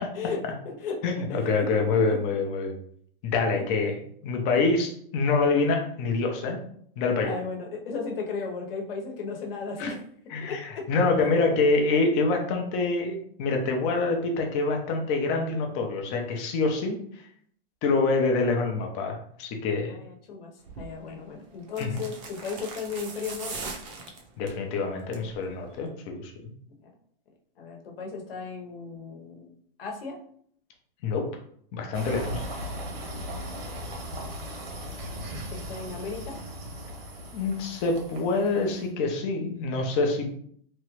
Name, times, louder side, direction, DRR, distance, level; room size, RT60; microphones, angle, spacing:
voice 1, 0.1-1.0 1.3-1.7 1.9-2.2 7.2-10.0 10.4-10.9 11.2-11.6 19.9-20.5 20.8-23.7 26.8-26.9 27.6-29.5 29.8-30.2 35.5-36.4, left 4 dB, 75° left, 1 dB, 0.9 m, -35 dB
voice 2, 1.0-2.7 3.2-6.6 7.0-7.4 9.8-9.9 10.3-17.2 17.8-20.0 21.8-22.0 24.4-26.5 31.0-31.3 31.7-32.4 37.3-40.3, left 3 dB, 25° left, 2 dB, 0.5 m, -26 dB
sound 1, 20.7-20.9 21.7-24.6 25.0-25.3 25.6-25.7, right 4 dB, 35° right, 0.6 m, -39 dB
sound 2, 31.9-38.9, equal, 75° right, 1.2 m, -37 dB
3.0 x 2.3 x 3.0 m, 0.62 s
hypercardioid pair, 150°, 29 cm